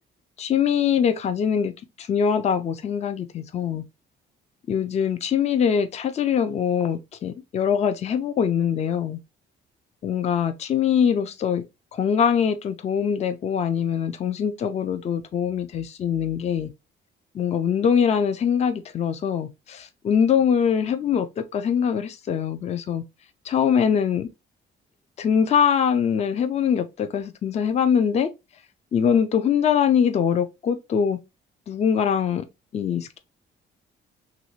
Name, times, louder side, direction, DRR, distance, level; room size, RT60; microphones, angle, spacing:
voice 1, 0.4-1.7 2.0-3.8 4.7-9.2 10.0-11.6 11.9-16.7 17.3-23.0 23.5-24.3 25.2-28.3 28.9-31.2 31.7-32.4 32.7-33.2, left 7 dB, 35° left, 0.4 m, -23 dB
3.2 x 2.6 x 3.0 m
cardioid pair, 140°, 19 cm